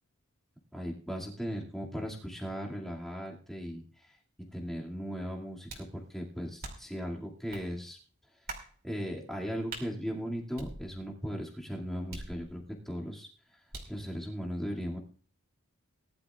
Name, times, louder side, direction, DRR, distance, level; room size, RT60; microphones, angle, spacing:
voice 1, 0.7-3.8 4.5-8.0 8.8-13.3 13.9-15.0, equal, ahead, -3 dB, 2.3 m, -37 dB
sound 1, 5.7-6.0 6.6-7.0 7.5-7.7 8.5-8.7 9.7-9.9 10.6-11.2 12.1-12.8 13.7-14.0, right 3 dB, 40° right, 2.8 m, -44 dB
19.5 x 11.5 x 2.4 m, 0.41 s
head